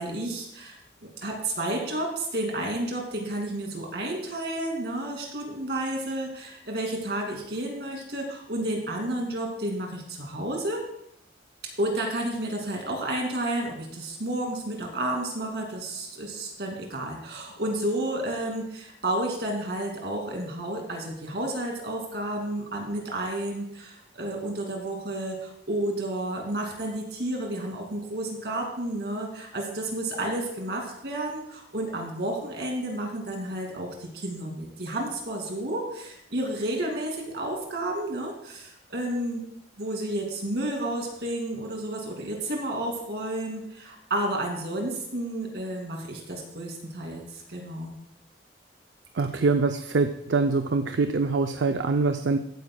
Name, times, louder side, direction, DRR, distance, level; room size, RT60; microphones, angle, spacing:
voice 1, 0.0-10.9 11.8-39.5 39.8-47.9, right 1 dB, 65° right, 0 dB, 2.5 m, -31 dB
voice 2, 49.2-52.4, right 3 dB, 85° right, 7 dB, 0.5 m, -24 dB
14.5 x 9.4 x 2.3 m, 0.75 s
head